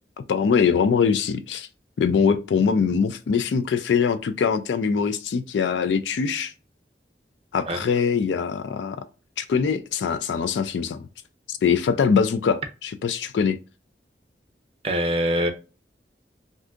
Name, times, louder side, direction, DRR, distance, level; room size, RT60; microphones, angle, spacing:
voice 1, 0.3-1.7 2.0-6.5 7.5-9.0 9.4-11.1 11.5-13.6, left 6 dB, 90° left, 0.3 m, -22 dB
voice 2, 14.8-15.5, equal, 35° right, 0.5 m, -23 dB
2.7 x 2.4 x 3.5 m
head